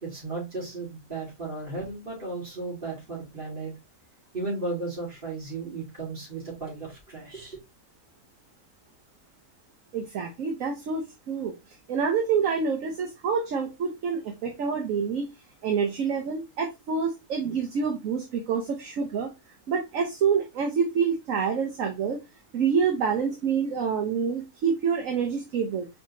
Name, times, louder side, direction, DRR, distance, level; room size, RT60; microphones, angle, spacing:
voice 1, 0.0-3.7 4.3-7.6, right 3 dB, 35° right, 3.1 m, -35 dB
voice 2, 9.9-11.5 11.9-15.3 15.6-19.3 19.7-22.2 22.5-25.9, right 6 dB, 65° right, 1.2 m, -27 dB
4.8 x 3.4 x 2.7 m
omnidirectional pair, 1.6 m